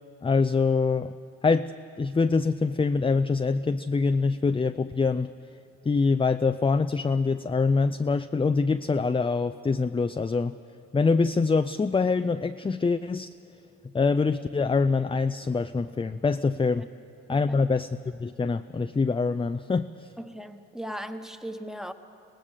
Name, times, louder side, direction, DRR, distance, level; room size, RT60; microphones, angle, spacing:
voice 1, 0.2-1.1 1.4-5.3 5.9-10.6 10.9-13.3 13.9-16.9 17.3-17.9 18.2-20.1, left 4 dB, 15° left, 9 dB, 0.5 m, -24 dB
voice 2, 20.2-21.9, equal, ahead, 8 dB, 1.3 m, -38 dB
24.0 x 18.0 x 6.7 m, 2.5 s
hypercardioid pair, 50°, 39 cm